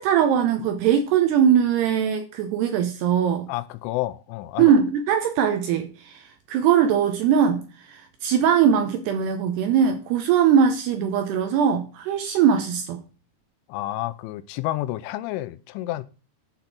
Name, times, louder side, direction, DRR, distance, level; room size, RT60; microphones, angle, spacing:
voice 1, 0.0-3.5 4.6-13.0, right 8 dB, 75° right, 2.5 m, -21 dB
voice 2, 3.5-4.7 13.7-16.0, left 16 dB, 85° left, 3.1 m, -30 dB
11.5 x 4.1 x 5.9 m
omnidirectional pair, 5.5 m